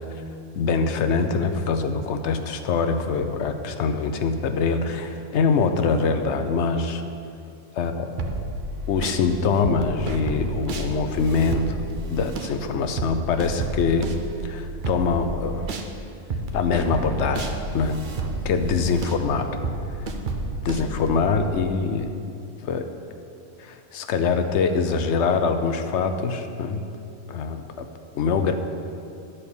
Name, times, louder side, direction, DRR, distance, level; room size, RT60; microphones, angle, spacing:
voice 1, 0.5-7.0 7.8-8.1 8.9-11.8 12.1-14.1 14.4-15.7 16.5-18.0 18.4-19.5 20.6-22.1 22.6-22.8 23.6-26.8 27.3-27.9 28.1-28.5, left 5 dB, 65° left, 7 dB, 0.8 m, -24 dB
sound 1, 8.2-9.2 9.6-15.9 16.3-21.5, right 2 dB, 50° right, 0.7 m, -31 dB
11.0 x 4.3 x 6.8 m, 2.6 s
omnidirectional pair, 1.4 m